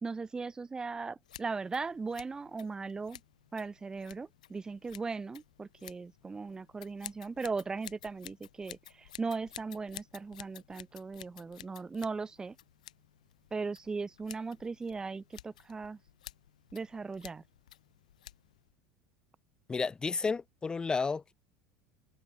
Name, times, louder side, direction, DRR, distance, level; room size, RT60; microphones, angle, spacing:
voice 1, 0.0-3.2 3.5-12.5 13.5-16.0 16.7-17.4, right 4 dB, 20° right, 1.3 m, -38 dB
Scissors, 1.2-18.7, left 12 dB, 85° left, 6.9 m, -53 dB
voice 2, 19.7-21.3, left 4 dB, 20° left, 3.3 m, -32 dB
hypercardioid pair, 80°, 4 cm